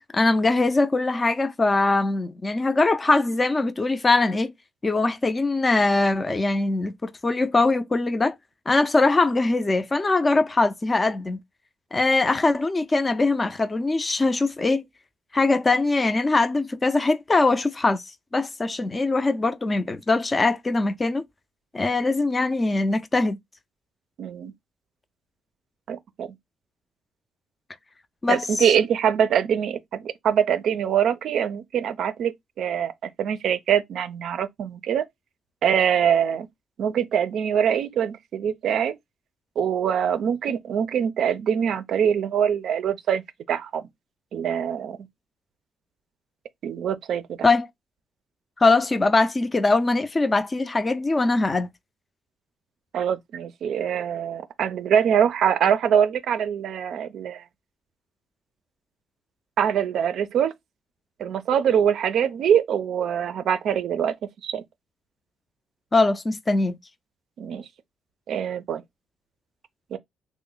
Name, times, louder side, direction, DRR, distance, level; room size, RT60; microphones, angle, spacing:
voice 1, 0.1-4.5 4.8-8.4 8.7-11.4 11.9-14.8 15.3-21.2 21.7-23.4 28.2-28.7 47.4-47.7 48.6-51.7 65.9-66.8, left 3 dB, 25° left, 0.4 m, -22 dB
voice 2, 24.2-24.5 25.9-26.3 28.3-35.0 35.6-36.5 36.8-39.0 39.6-43.2 43.5-43.9 44.3-45.0 46.6-47.4 52.9-57.4 59.6-60.5 61.2-64.1 64.4-64.6 67.4-67.7 68.3-68.8 69.9-70.0, right 8 dB, 70° right, 0.4 m, -23 dB
3.0 x 2.0 x 3.7 m
cardioid pair, 90°, 0 cm